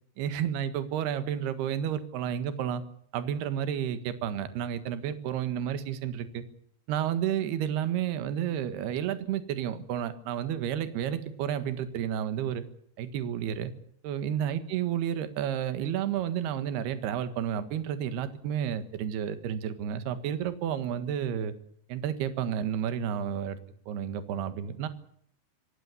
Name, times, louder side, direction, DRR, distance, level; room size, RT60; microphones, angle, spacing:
voice 1, 0.2-2.8 3.1-6.4 6.9-12.6 13.0-13.7 14.0-21.5 21.9-23.6 23.9-24.9, right 9 dB, 65° right, 11 dB, 3.4 m, -31 dB
26.5 x 17.5 x 8.4 m, 0.65 s
omnidirectional pair, 5.4 m